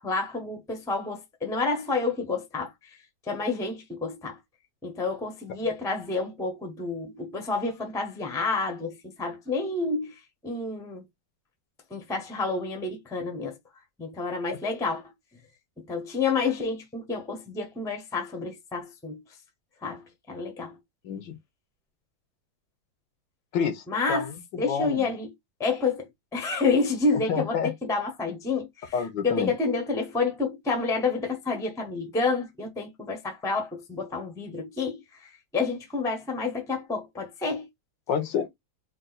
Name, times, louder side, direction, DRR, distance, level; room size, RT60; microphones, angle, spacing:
voice 1, 0.0-2.7 3.3-4.4 4.8-10.1 10.4-11.0 11.9-13.6 14.0-15.0 15.9-19.2 19.8-20.0 20.3-20.7 23.9-25.3 25.6-26.1 26.3-28.9 29.2-37.7, left 4 dB, 5° left, 0.6 m, -29 dB
voice 2, 21.0-21.4 23.5-25.1 27.3-27.7 28.9-29.5 38.1-38.5, left 7 dB, 75° left, 1.4 m, -29 dB
3.8 x 2.5 x 3.9 m
omnidirectional pair, 2.0 m